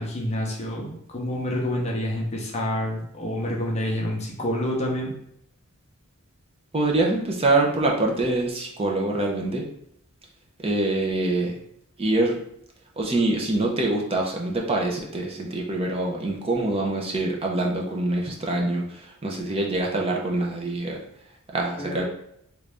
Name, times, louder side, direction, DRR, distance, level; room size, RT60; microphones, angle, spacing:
voice 1, 0.0-5.1 21.8-22.0, left 1 dB, 30° left, -1 dB, 0.7 m, -28 dB
voice 2, 6.7-9.7 10.6-11.6 12.0-12.3 13.0-21.0 21.5-22.0, right 2 dB, 25° right, 0 dB, 0.6 m, -25 dB
3.2 x 2.5 x 3.3 m, 0.73 s
head